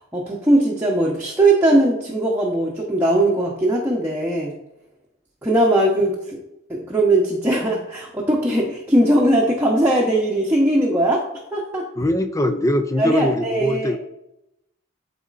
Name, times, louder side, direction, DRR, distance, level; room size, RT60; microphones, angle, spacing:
voice 1, 0.0-4.5 5.4-6.4 6.7-11.2 11.5-11.8 13.0-13.9, right 1 dB, 10° right, -4 dB, 1.0 m, -19 dB
voice 2, 12.0-14.0, left 1 dB, 15° left, 8 dB, 0.5 m, -21 dB
12.0 x 4.3 x 2.5 m, 0.83 s
head